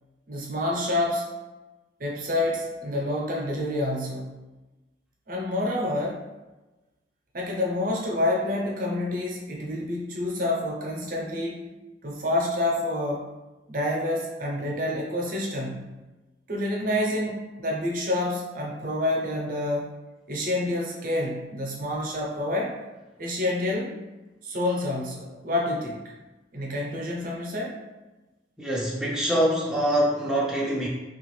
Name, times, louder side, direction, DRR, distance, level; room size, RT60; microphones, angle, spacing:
voice 1, 0.3-1.3 2.0-4.3 5.3-6.2 7.3-11.6 12.0-13.3 13.7-16.0 16.5-19.9 20.3-22.7 23.2-23.9 24.4-26.0 26.5-27.8, left 1 dB, 50° right, -1 dB, 0.6 m, -28 dB
voice 2, 28.6-30.9, right 1 dB, 5° right, -5 dB, 0.4 m, -24 dB
3.4 x 2.4 x 3.1 m, 1.1 s
head